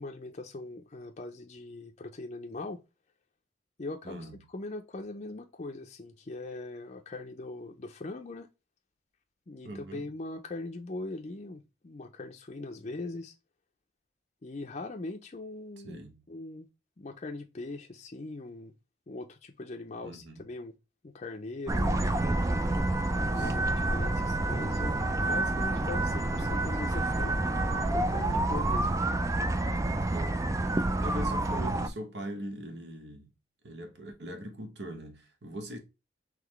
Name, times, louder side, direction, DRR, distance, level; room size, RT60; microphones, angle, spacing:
voice 1, 0.0-2.8 3.8-4.3 4.5-8.5 9.5-13.3 14.4-16.0 16.3-16.7 17.0-18.7 19.1-20.8 21.0-22.1 23.2-28.9, left 2 dB, 40° left, 0.5 m, -41 dB
voice 2, 4.0-4.5 9.6-10.1 15.8-16.3 20.0-20.4 23.3-23.8 30.1-30.5 31.0-33.3 33.6-35.8, equal, 65° right, 1.0 m, -41 dB
sound 1, 21.7-31.9, right 2 dB, 15° right, 0.3 m, -28 dB
3.9 x 3.2 x 3.0 m
head